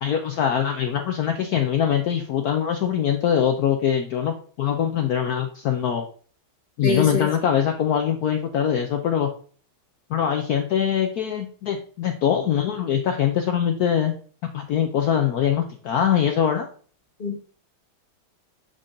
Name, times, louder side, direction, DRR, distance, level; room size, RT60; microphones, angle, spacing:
voice 1, 0.0-6.1 6.8-9.3 10.1-14.1 14.5-16.7, left 9 dB, 70° left, 5 dB, 0.9 m, -23 dB
voice 2, 6.8-7.3 17.2-17.4, left 4 dB, 40° left, 1 dB, 0.8 m, -24 dB
8.0 x 3.8 x 3.8 m, 0.43 s
omnidirectional pair, 2.2 m